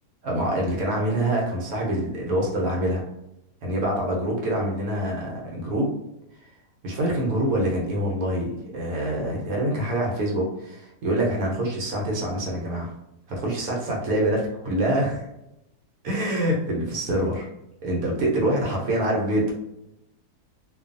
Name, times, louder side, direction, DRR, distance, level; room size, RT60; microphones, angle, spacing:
voice 1, 0.2-3.0 3.6-5.9 6.8-12.9 13.3-15.3 16.0-17.5 17.8-19.5, right 1 dB, 70° right, -2 dB, 1.1 m, -25 dB
2.5 x 2.4 x 2.4 m, 0.84 s
omnidirectional pair, 1.7 m